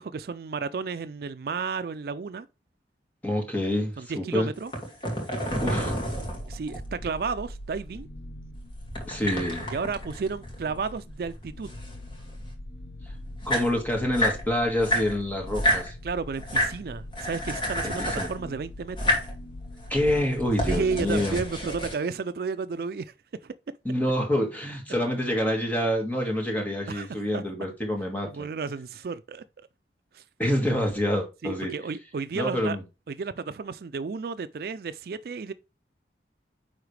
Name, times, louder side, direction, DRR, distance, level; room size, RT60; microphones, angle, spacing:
voice 1, 0.0-2.5 4.0-4.7 6.5-8.1 9.7-11.7 16.0-19.2 20.7-23.1 23.4-23.5 26.9-27.1 27.3-27.4 28.2-29.4 30.1-30.2 31.4-32.8 33.1-35.5, right 5 dB, 55° right, 0.4 m, -32 dB
voice 2, 3.2-4.5 5.6-6.0 9.1-9.7 13.5-16.0 17.8-18.3 19.9-21.4 23.9-28.5 30.4-31.7 32.3-32.8, left 1 dB, 10° left, 1.8 m, -27 dB
sound 1, 4.6-7.0 8.9-11.0 11.2-12.5 13.1-13.2 13.3-14.4 14.8-15.9 16.4-16.8 17.1-18.4 18.9-19.3 19.8-21.9, equal, 30° left, 2.3 m, -29 dB
sound 2, 5.5-21.9, left 1 dB, 55° left, 0.7 m, -42 dB
9.6 x 4.0 x 3.3 m
head